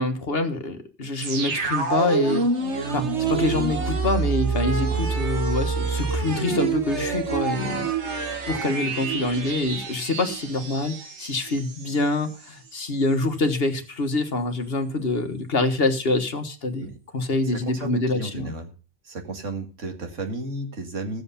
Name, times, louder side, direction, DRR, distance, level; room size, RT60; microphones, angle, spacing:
voice 1, 0.0-2.4 2.9-7.9 8.5-16.9 17.1-18.5, left 2 dB, 55° left, 8 dB, 1.6 m, -25 dB
sound 1, 1.2-12.0 12.3-12.4, right 4 dB, 70° right, 1.8 m, -27 dB
voice 2, 17.4-18.7 19.0-21.2, right 2 dB, 90° right, 5 dB, 2.3 m, -33 dB
14.5 x 7.9 x 5.6 m, 0.35 s
omnidirectional pair, 1.2 m